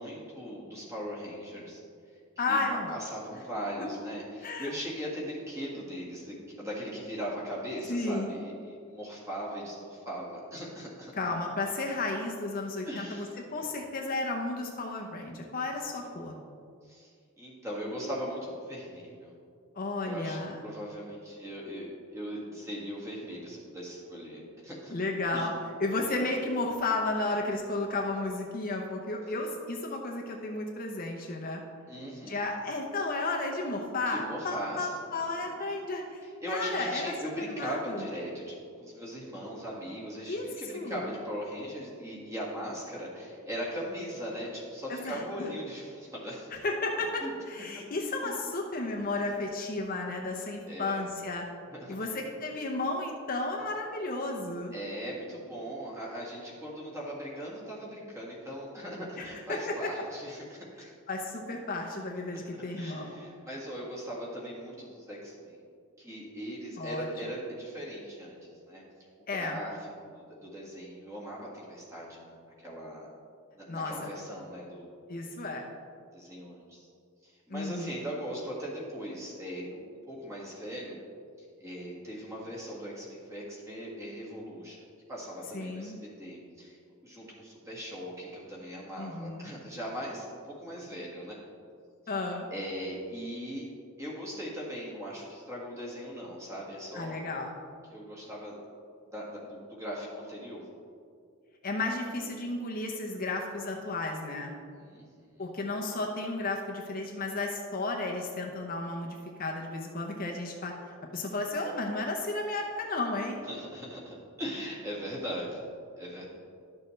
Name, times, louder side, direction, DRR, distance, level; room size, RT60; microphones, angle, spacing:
voice 1, 0.0-1.8 2.5-2.6 2.9-11.1 12.9-13.3 16.8-19.3 20.0-24.9 25.3-25.5 26.1-26.3 31.9-32.4 34.1-35.8 36.2-46.6 47.2-47.3 47.7-47.8 48.2-48.3 50.7-51.1 51.8-52.1 54.7-60.9 62.3-62.4 62.7-65.6 66.0-68.8 69.2-73.1 73.5-74.9 76.1-76.9 77.2-81.0 81.6-91.4 92.5-93.7 94.0-97.2 97.9-98.6 99.1-100.6 104.8-105.5 113.5-115.7 116.0-116.3, equal, 15° right, -5 dB, 1.8 m, -39 dB
voice 2, 2.4-3.0 4.4-4.7 7.9-8.3 11.2-13.3 13.5-16.3 19.7-20.6 24.9-25.5 25.8-31.6 32.3-36.2 36.5-38.0 40.3-40.5 40.7-41.1 44.9-45.5 46.5-51.5 51.9-54.7 59.2-59.7 61.1-63.2 66.8-67.1 69.3-69.6 73.7-74.1 75.1-75.7 77.5-78.0 85.5-86.0 89.0-89.5 92.1-92.5 96.9-97.5 101.6-104.5 105.4-113.4, left 2 dB, 40° left, 1 dB, 0.7 m, -33 dB
11.5 x 6.6 x 3.2 m, 2.3 s
head